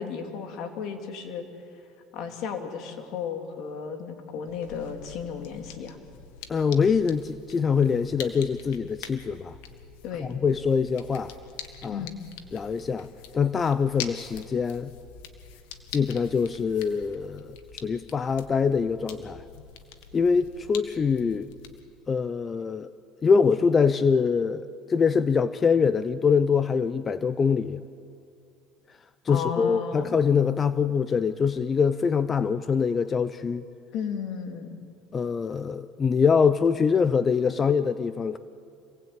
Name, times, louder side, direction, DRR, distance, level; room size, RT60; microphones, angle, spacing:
voice 1, 0.0-1.4 2.1-6.0 10.0-10.3 11.9-12.2 29.3-30.2 33.9-34.7, left 7 dB, 65° left, 5 dB, 3.2 m, -34 dB
sound 1, 4.5-21.8, left 8 dB, 80° left, 2.0 m, -45 dB
voice 2, 6.5-9.6 10.2-11.3 11.8-12.1 12.5-13.1 13.3-14.9 15.9-17.5 17.8-19.4 20.1-21.5 22.1-22.9 23.2-27.8 29.2-33.6 35.1-38.4, left 6 dB, 30° left, 14 dB, 0.7 m, -24 dB
27.0 x 18.5 x 9.0 m, 2.4 s
supercardioid pair, 95°, 0 cm